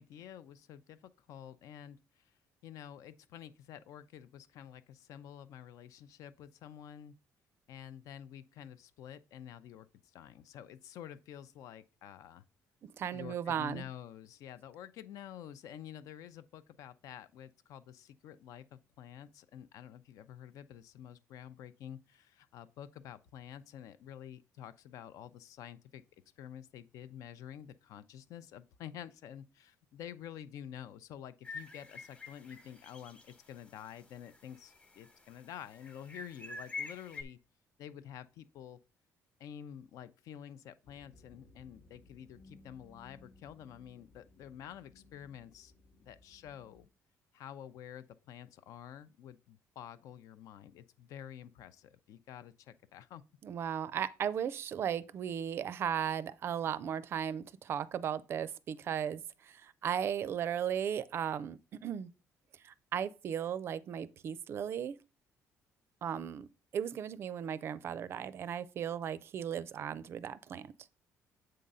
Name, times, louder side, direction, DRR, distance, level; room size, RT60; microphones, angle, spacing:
voice 1, 0.0-2.3 2.6-7.2 7.7-12.4 13.1-26.0 26.4-37.4 37.8-38.8 39.4-45.7 46.0-46.9 47.3-53.2, left 10 dB, 70° left, 0.6 m, -49 dB
voice 2, 12.8-13.9 53.4-62.1 62.6-64.9 66.0-66.5 66.7-70.7, right 8 dB, 45° right, 0.4 m, -36 dB
sound 1, 31.4-33.3 33.7-33.8 34.3-35.1 35.7-37.2, left 4 dB, 20° left, 1.1 m, -46 dB
sound 2, 40.8-46.9, left 2 dB, 45° left, 1.0 m, -61 dB
7.8 x 3.8 x 5.4 m
cardioid pair, 165°, 6 cm